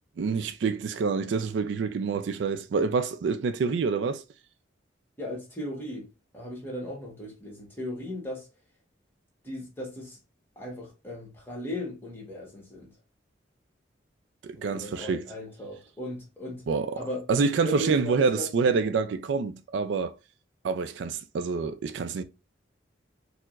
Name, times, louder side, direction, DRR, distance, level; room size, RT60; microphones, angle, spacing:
voice 1, 0.2-4.2 14.4-15.3 16.7-17.0 17.3-20.1 20.6-22.2, right 5 dB, 65° right, 0.3 m, -27 dB
voice 2, 5.2-6.1 6.3-8.5 9.4-10.2 10.6-12.9 14.5-16.6 16.9-17.2 17.6-18.5 18.8-18.9, left 1 dB, 10° left, 1.1 m, -37 dB
4.4 x 2.0 x 2.3 m
head